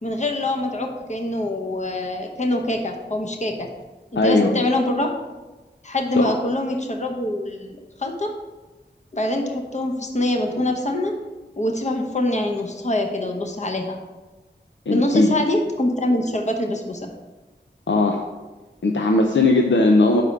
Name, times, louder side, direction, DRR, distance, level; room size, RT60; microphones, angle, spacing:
voice 1, 0.0-3.7 4.1-5.1 5.8-8.3 9.1-11.2 11.6-14.0 14.9-17.1, left 1 dB, 40° left, 3 dB, 0.8 m, -24 dB
voice 2, 4.2-4.6 6.2-6.3 14.9-15.4 17.9-18.2 18.8-20.2, left 2 dB, 85° left, 2 dB, 0.6 m, -18 dB
5.1 x 4.9 x 5.7 m, 1.2 s
wide cardioid pair, 50°, 19 cm